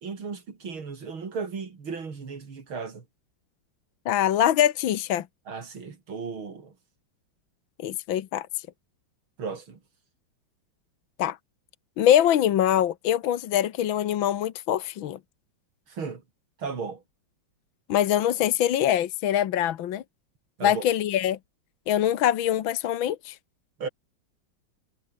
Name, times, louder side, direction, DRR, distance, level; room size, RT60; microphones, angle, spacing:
voice 1, 0.0-3.1 5.5-6.7 9.4-9.8 15.9-16.2 16.6-17.0 20.6-20.9 23.8-23.9, right 5 dB, 85° right, 4.0 m, -35 dB
voice 2, 4.1-5.3 7.8-8.5 11.2-11.4 12.0-15.2 17.9-20.0 20.6-21.4 21.9-23.4, left 11 dB, 75° left, 1.8 m, -23 dB
omnidirectional pair, 2.2 m